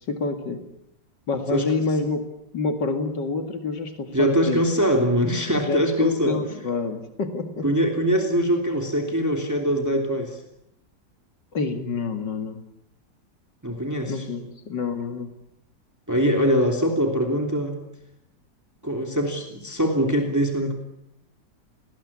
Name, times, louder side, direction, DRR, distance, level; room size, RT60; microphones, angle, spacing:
voice 1, 0.1-0.6 1.3-2.3 2.5-4.6 5.7-7.7 11.5-12.6 14.1-15.3, left 4 dB, 90° left, 6 dB, 2.7 m, -27 dB
voice 2, 1.5-1.8 4.1-6.6 7.6-10.4 13.6-14.3 16.1-17.8 18.8-20.7, equal, 10° right, 3 dB, 2.9 m, -23 dB
29.5 x 20.0 x 8.7 m, 0.81 s
omnidirectional pair, 1.8 m